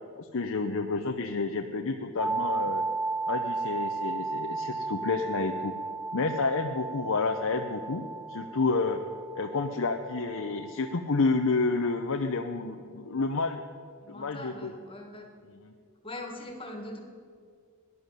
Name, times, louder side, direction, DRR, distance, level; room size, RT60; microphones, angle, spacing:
voice 1, 0.2-2.8 3.3-5.7 6.1-8.0 8.3-9.0 9.4-13.6 14.1-14.7 15.5-15.7, left 3 dB, 65° left, 4 dB, 0.8 m, -29 dB
sound 1, 2.2-12.0, right 3 dB, 5° right, 0.6 m, -35 dB
voice 2, 14.0-15.3 16.0-17.0, left 1 dB, 25° left, 3 dB, 2.0 m, -41 dB
17.5 x 11.0 x 7.5 m, 2.1 s
head